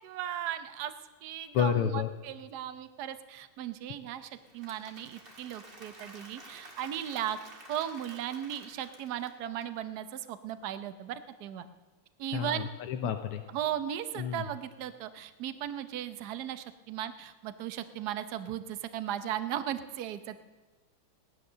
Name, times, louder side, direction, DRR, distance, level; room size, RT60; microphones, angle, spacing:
voice 1, 0.0-0.9 1.2-7.4 7.7-11.7 12.2-12.7 13.0-13.1 13.5-20.4, right 11 dB, 60° right, 12 dB, 1.2 m, -37 dB
voice 2, 1.5-2.1 12.3-13.4 14.2-14.4, left 8 dB, 85° left, 5 dB, 1.7 m, -30 dB
Applause / Crowd, 4.3-9.6, right 2 dB, 25° right, 2.0 m, -52 dB
18.0 x 11.5 x 6.8 m, 1.3 s
omnidirectional pair, 2.4 m